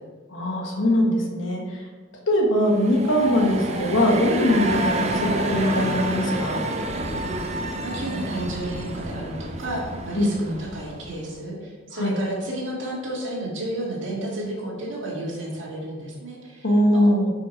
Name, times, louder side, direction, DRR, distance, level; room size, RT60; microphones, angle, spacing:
voice 1, 0.3-1.8 2.3-6.6 10.1-10.3 12.0-12.2 16.6-17.3, left 1 dB, 75° left, 0 dB, 1.3 m, -21 dB
sound 1, 2.6-11.3, right 1 dB, 35° right, 0.6 m, -29 dB
voice 2, 7.1-7.4 7.8-16.7, right 1 dB, 70° right, -3 dB, 1.9 m, -32 dB
5.8 x 4.9 x 4.5 m, 1.4 s
head